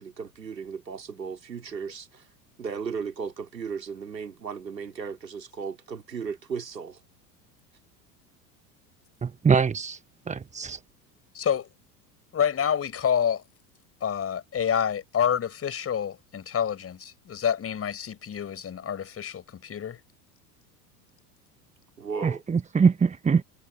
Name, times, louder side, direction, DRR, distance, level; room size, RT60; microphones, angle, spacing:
voice 1, 0.0-2.3 2.6-7.0 22.0-22.4, right 6 dB, 85° right, 3.6 m, -35 dB
voice 2, 9.2-10.0 10.3-10.8 22.2-23.4, right 5 dB, 15° right, 1.2 m, -23 dB
voice 3, 11.3-11.7 12.3-13.4 14.0-20.0, left 8 dB, 30° left, 5.4 m, -28 dB
figure-of-eight pair, 80°, 49 cm